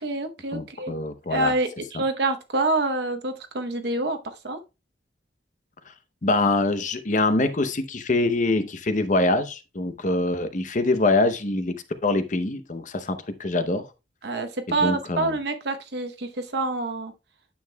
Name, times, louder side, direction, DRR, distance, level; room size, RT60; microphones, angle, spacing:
voice 1, 0.0-0.9 1.3-4.2 4.4-4.6 14.2-17.1, right 2 dB, 60° right, 0.9 m, -27 dB
voice 2, 0.5-1.5 6.2-11.8 12.0-13.9 14.8-15.4, left 2 dB, 40° left, 0.7 m, -24 dB
9.3 x 7.1 x 2.2 m
head